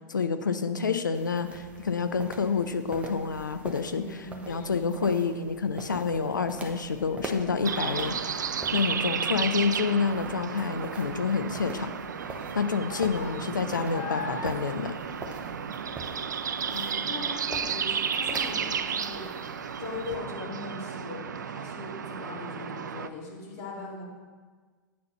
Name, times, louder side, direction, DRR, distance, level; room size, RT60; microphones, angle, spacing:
voice 1, 0.1-4.0 4.4-11.9 12.5-14.9, left 5 dB, 85° left, 9 dB, 0.5 m, -28 dB
sound 1, 1.1-20.2, right 2 dB, 10° right, 1.0 m, -45 dB
voice 2, 3.9-4.5 16.7-19.3 19.8-24.0, left 4 dB, 40° left, -3 dB, 2.5 m, -40 dB
Child speech kid speaking, 4.0-15.9 16.3-16.7 17.2-17.3, left 5 dB, 60° left, 0.9 m, -44 dB
sound 2, 7.6-23.1, right 7 dB, 75° right, 0.4 m, -33 dB
8.6 x 4.1 x 6.6 m, 1.5 s
figure-of-eight pair, 95°, 10 cm